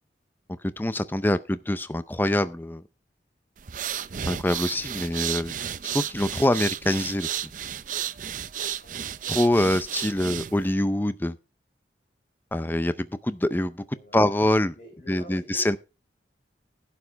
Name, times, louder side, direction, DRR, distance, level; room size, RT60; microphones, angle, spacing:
voice 1, 0.8-2.8 4.3-5.5 5.8-7.3 9.3-11.3 12.5-14.7 15.1-15.8, left 1 dB, 10° left, 0.5 m, -25 dB
sound 1, 3.6-10.7, right 9 dB, 45° right, 0.5 m, -33 dB
voice 2, 14.7-15.8, equal, 45° left, 4.4 m, -47 dB
11.5 x 8.4 x 4.6 m
head